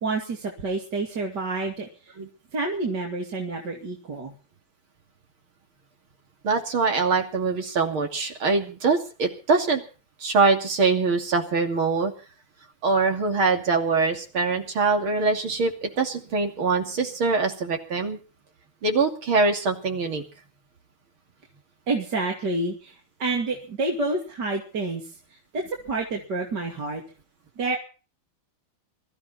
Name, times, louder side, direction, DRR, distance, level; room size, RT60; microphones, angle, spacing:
voice 1, 0.0-2.1 2.5-4.3 21.9-27.0 27.6-27.8, right 3 dB, 50° right, 0 dB, 3.1 m, -29 dB
voice 2, 6.4-9.8 10.2-12.1 12.8-18.2 18.8-20.2, right 4 dB, 75° right, 4 dB, 3.5 m, -23 dB
23.0 x 13.5 x 4.2 m, 0.37 s
omnidirectional pair, 2.3 m